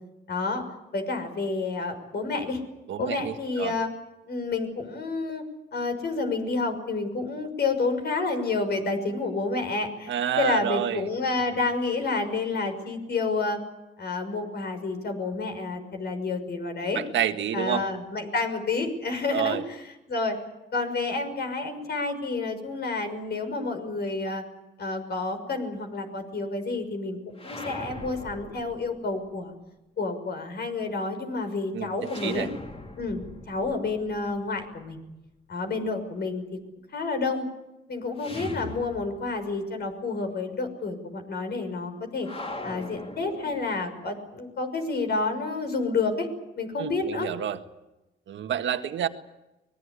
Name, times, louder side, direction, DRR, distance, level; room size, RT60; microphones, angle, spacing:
voice 1, 0.3-0.6 0.9-2.6 3.0-3.9 4.3-5.4 5.7-13.6 14.0-17.0 17.5-20.4 20.7-24.4 24.8-29.5 30.0-32.5 33.0-35.0 35.5-36.6 36.9-37.5 37.9-42.3 42.6-46.3 46.6-47.3, left 3 dB, 55° left, 6 dB, 6.2 m, -29 dB
voice 2, 2.9-3.7 10.1-11.1 16.9-17.8 19.3-19.6 31.7-31.9 32.2-32.5 46.8-47.6 48.3-49.1, right 10 dB, 70° right, 7 dB, 1.8 m, -28 dB
sound 1, 27.3-29.3 32.0-35.0 38.2-39.6 39.8-39.9 42.2-44.0, left 2 dB, 30° left, 3.5 m, -41 dB
24.5 x 20.5 x 8.5 m, 0.97 s
cardioid pair, 90°, 20 cm